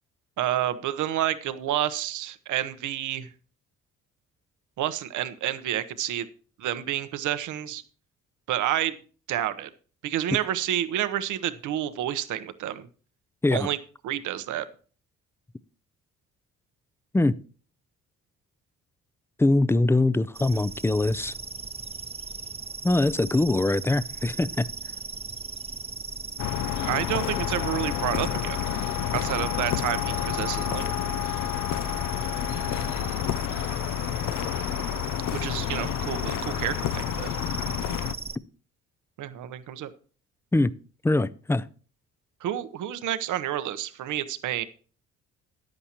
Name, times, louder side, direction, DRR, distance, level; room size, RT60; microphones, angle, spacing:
voice 1, 0.4-3.3 4.8-6.3 6.6-7.8 8.5-9.0 9.3-9.7 10.0-12.9 13.5-13.8 14.0-14.7 26.8-28.6 29.1-30.9 35.3-37.3 39.2-39.9 42.4-44.6, right 12 dB, 80° right, 0.9 m, -29 dB
voice 2, 19.4-21.3 22.8-24.7 40.5-40.8 41.0-41.7, left 2 dB, 10° left, 0.4 m, -22 dB
sound 1, 20.3-38.4, right 4 dB, 20° right, 0.7 m, -38 dB
sound 2, 26.4-38.1, left 11 dB, 85° left, 0.6 m, -29 dB
14.5 x 9.8 x 2.9 m
cardioid pair, 90°, 30 cm